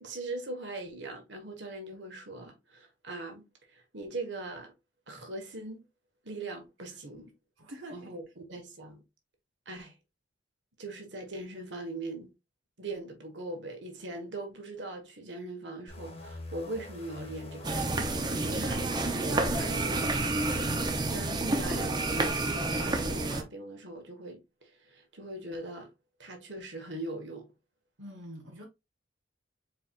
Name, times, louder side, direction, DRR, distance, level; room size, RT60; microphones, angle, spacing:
voice 1, 0.0-3.5 3.7-4.7 5.1-5.8 6.2-7.3 7.9-9.0 9.6-9.9 10.8-12.3 12.8-20.8 21.1-25.9 26.2-27.5, right 2 dB, 65° right, 1.6 m, -41 dB
voice 2, 7.6-8.1 28.0-28.6, equal, 85° right, 1.3 m, -45 dB
sound 1, 15.9-21.4, left 2 dB, 30° left, 1.2 m, -43 dB
sound 2, 17.6-23.4, right 2 dB, 20° right, 0.7 m, -29 dB
4.6 x 4.6 x 2.5 m
head